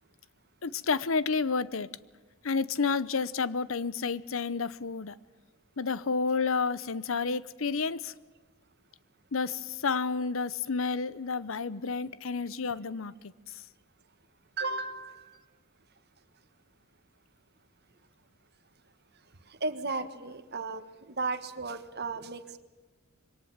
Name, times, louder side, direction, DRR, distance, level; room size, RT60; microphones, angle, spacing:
voice 1, 0.6-1.9 2.4-5.2 5.8-8.1 9.3-13.1 13.5-13.6, left 4 dB, 65° left, 0.8 m, -30 dB
voice 2, 14.6-15.4 19.5-22.6, right 3 dB, 50° right, 1.5 m, -35 dB
23.0 x 18.5 x 7.4 m
head